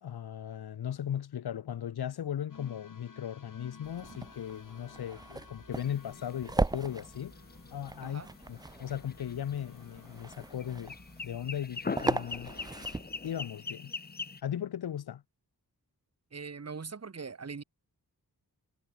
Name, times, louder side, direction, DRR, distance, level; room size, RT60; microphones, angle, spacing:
voice 1, 0.0-7.3 7.7-8.2 8.5-11.0 11.2-12.5 13.2-13.9 14.4-15.2, left 10 dB, 85° left, 0.8 m, -37 dB
sound 1, 2.5-11.2, left 5 dB, 55° left, 2.6 m, -56 dB
sound 2, 3.8-13.4, right 3 dB, 10° right, 0.3 m, -38 dB
sound 3, 5.7-14.4, left 4 dB, 25° left, 0.7 m, -43 dB
voice 2, 8.0-8.3 16.3-17.6, right 5 dB, 40° right, 1.5 m, -41 dB
wide cardioid pair, 65°, 37 cm